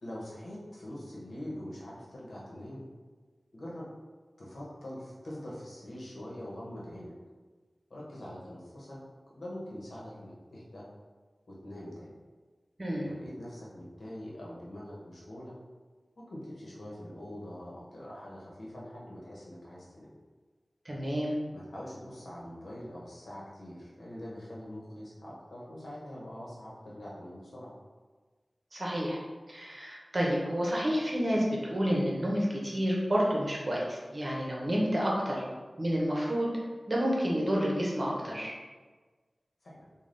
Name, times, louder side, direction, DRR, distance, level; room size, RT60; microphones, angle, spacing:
voice 1, 0.0-2.8 3.5-3.8 4.4-7.1 7.9-9.0 9.3-10.9 11.5-12.1 13.0-15.5 16.2-20.1 21.5-27.7 39.6-39.9, left 1 dB, 90° left, -6 dB, 1.0 m, -44 dB
voice 2, 20.8-21.3 28.7-29.2 29.5-35.4 35.8-36.5 36.9-38.5, equal, 40° right, -4 dB, 0.9 m, -29 dB
3.9 x 2.3 x 3.3 m, 1.4 s
wide cardioid pair, 70°, 0 cm